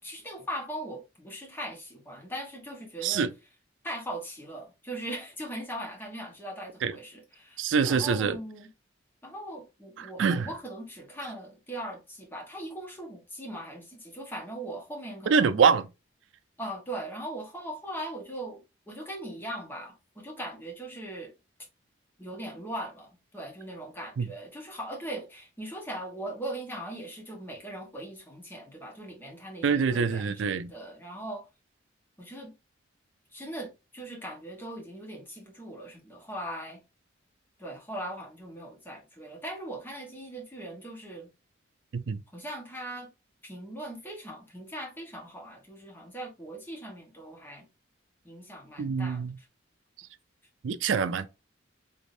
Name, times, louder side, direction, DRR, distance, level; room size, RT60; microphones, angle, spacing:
voice 1, 0.0-3.3 3.8-8.7 9.2-15.6 16.6-18.6 18.9-21.3 22.2-31.5 32.2-32.5 33.3-36.8 37.6-41.3 42.3-43.1 43.4-47.7 48.2-49.5, right 1 dB, 10° left, 1.2 m, -40 dB
voice 2, 7.6-8.4 10.2-10.5 15.3-15.9 24.2-24.3 29.6-30.7 41.9-42.2 48.8-49.3 50.6-51.3, right 6 dB, 75° right, 0.4 m, -25 dB
3.5 x 3.5 x 2.6 m
head